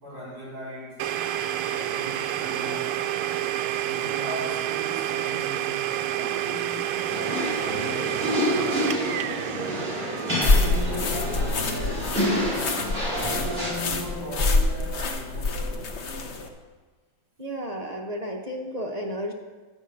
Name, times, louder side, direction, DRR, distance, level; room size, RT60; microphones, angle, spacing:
voice 1, 0.0-1.0 1.6-3.0 3.8-8.9 9.5-12.0 13.0-15.9, right 1 dB, 45° right, -6 dB, 4.5 m, -38 dB
Domestic sounds home sounds, 1.0-12.6, right 12 dB, 85° right, 1.4 m, -30 dB
sound 1, 7.1-13.7, equal, 25° right, 4.0 m, -28 dB
sound 2, 10.4-16.5, left 3 dB, 50° left, 0.9 m, -26 dB
voice 2, 17.4-19.3, equal, 65° right, -1 dB, 0.4 m, -32 dB
11.0 x 5.4 x 7.7 m, 1.3 s
omnidirectional pair, 2.2 m